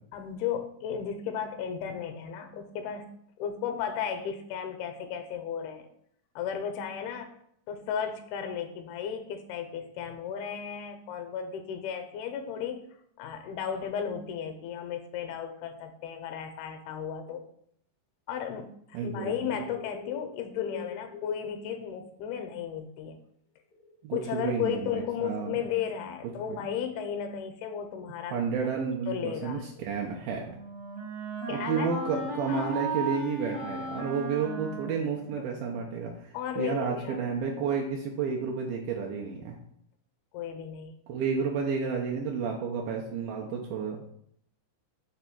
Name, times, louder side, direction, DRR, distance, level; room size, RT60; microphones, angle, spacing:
voice 1, 0.1-3.1 3.4-5.9 6.4-7.3 7.7-12.9 13.2-17.4 18.3-23.2 24.1-28.4 29.1-29.7 31.5-31.9 32.5-32.7 35.4-35.5 36.3-37.2 40.3-40.9, left 8 dB, 85° left, 7 dB, 2.4 m, -34 dB
voice 2, 18.9-19.3 24.0-25.6 26.5-26.6 28.3-30.5 31.5-39.6 41.1-44.1, right 5 dB, 80° right, -1 dB, 2.3 m, -31 dB
sound 1, 19.0-20.3 20.6-21.5 23.0-23.1 23.7-23.9, left 8 dB, 65° left, 0.8 m, -42 dB
Wind instrument woodwind instrument, 30.0-35.8, right 3 dB, 45° right, 1.0 m, -36 dB
6.1 x 3.4 x 5.8 m, 0.69 s
omnidirectional pair, 4.6 m